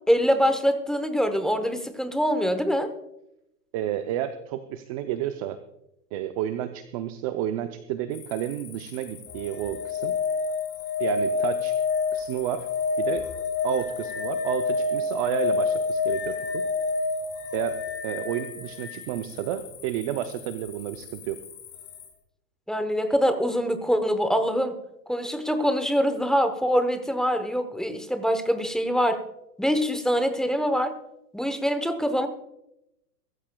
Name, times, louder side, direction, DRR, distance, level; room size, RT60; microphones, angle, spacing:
voice 1, 0.1-2.9 22.7-24.8 25.1-29.2 29.6-30.9 31.3-32.3, equal, ahead, 8 dB, 0.8 m, -24 dB
voice 2, 3.7-5.6 6.1-10.1 11.0-11.8 12.1-12.7 13.0-13.3 13.6-16.6 17.5-21.4, right 11 dB, 25° right, 9 dB, 0.5 m, -31 dB
sound 1, 8.1-22.1, left 10 dB, 35° left, 5.4 m, -46 dB
sound 2, 9.3-19.1 21.4-21.5, left 4 dB, 20° left, 2.5 m, -28 dB
23.5 x 14.0 x 2.3 m, 0.86 s
hypercardioid pair, 130°, 49 cm